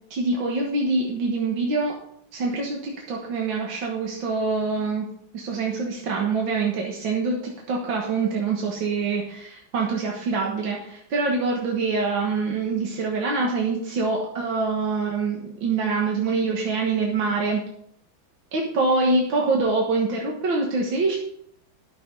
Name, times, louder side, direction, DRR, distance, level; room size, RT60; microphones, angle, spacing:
voice 1, 0.1-1.9 2.3-5.1 5.3-17.6 18.5-21.2, right 3 dB, 75° right, -1 dB, 2.1 m, -25 dB
11.5 x 6.9 x 5.3 m, 0.71 s
omnidirectional pair, 2.2 m